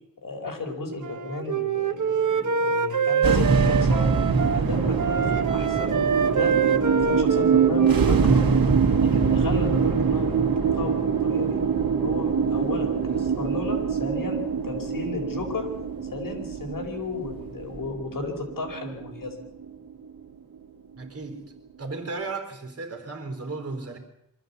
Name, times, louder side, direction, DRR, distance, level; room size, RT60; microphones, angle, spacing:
voice 1, 0.2-4.1 4.5-8.5 9.0-10.3 10.7-11.6 12.0-15.7 16.1-19.4, left 3 dB, 65° left, 4.8 m, -33 dB
Wind instrument woodwind instrument, 1.0-4.6 5.0-8.6, right 6 dB, 60° right, 1.1 m, -25 dB
sound 1, 3.2-19.6, right 6 dB, 80° right, 2.1 m, -23 dB
voice 2, 21.0-21.5 21.8-24.0, right 3 dB, 45° right, 4.1 m, -34 dB
24.0 x 14.5 x 8.4 m
wide cardioid pair, 140°, 35 cm